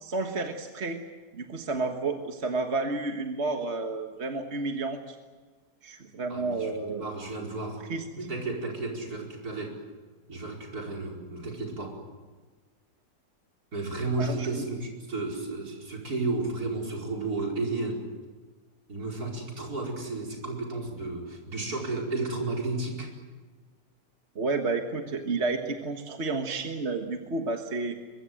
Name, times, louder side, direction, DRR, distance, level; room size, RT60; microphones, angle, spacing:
voice 1, 0.0-1.0 1.3-5.2 5.8-7.0 7.9-8.0 14.2-14.6 24.3-28.0, right 3 dB, 45° right, 4 dB, 1.7 m, -31 dB
voice 2, 6.3-7.8 8.2-9.8 10.3-12.0 13.7-18.0 18.9-23.1, right 3 dB, 65° right, 0 dB, 5.3 m, -33 dB
23.5 x 22.5 x 7.7 m, 1.3 s
omnidirectional pair, 1.7 m